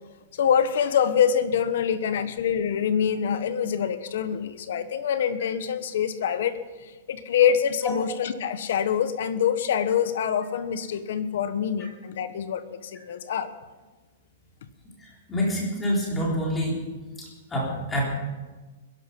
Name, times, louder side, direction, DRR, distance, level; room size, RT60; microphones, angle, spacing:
voice 1, 0.3-6.5 6.8-13.5, left 8 dB, 60° left, 12 dB, 1.2 m, -25 dB
voice 2, 15.0-16.8 17.2-18.0, equal, 10° left, -4 dB, 3.9 m, -27 dB
21.0 x 11.5 x 5.4 m, 1.3 s
supercardioid pair, 170°, 0 cm